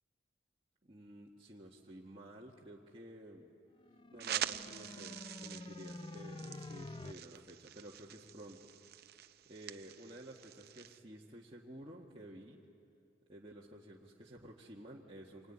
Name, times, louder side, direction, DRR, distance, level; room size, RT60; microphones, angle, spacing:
voice 1, 0.8-3.5 4.1-8.7 9.4-12.6 13.3-15.5, right 1 dB, 30° right, -5 dB, 1.7 m, -52 dB
sound 1, 3.8-7.1, left 2 dB, 25° left, 0.5 m, -48 dB
sound 2, 4.2-11.0, right 10 dB, 55° right, 0.6 m, -45 dB
26.0 x 21.0 x 10.0 m, 2.6 s
head